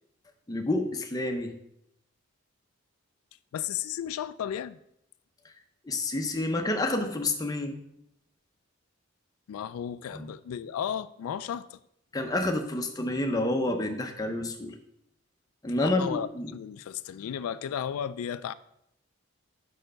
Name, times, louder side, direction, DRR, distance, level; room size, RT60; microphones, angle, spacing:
voice 1, 0.5-1.5 5.8-7.8 10.1-10.3 12.1-14.7 15.6-16.5, left 2 dB, 15° left, 0.6 m, -29 dB
voice 2, 3.5-4.8 9.5-11.8 15.8-18.5, left 9 dB, 90° left, 0.3 m, -34 dB
5.7 x 4.4 x 6.3 m
head